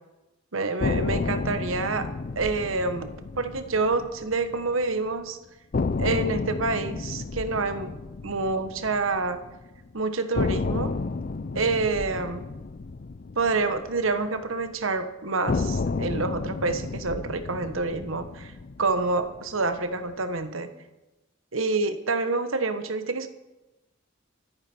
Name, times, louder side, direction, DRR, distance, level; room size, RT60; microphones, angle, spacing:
voice 1, 0.5-5.4 6.0-7.9 8.2-9.4 9.9-11.0 11.5-12.4 13.3-18.5 18.8-20.7 21.5-23.3, right 3 dB, 85° right, 9 dB, 1.3 m, -27 dB
sound 1, 0.8-4.9 5.2-5.3 5.7-9.8 10.4-14.7 15.5-19.8, left 3 dB, 45° left, 0.5 m, -31 dB
25.0 x 8.9 x 4.5 m, 1.0 s
head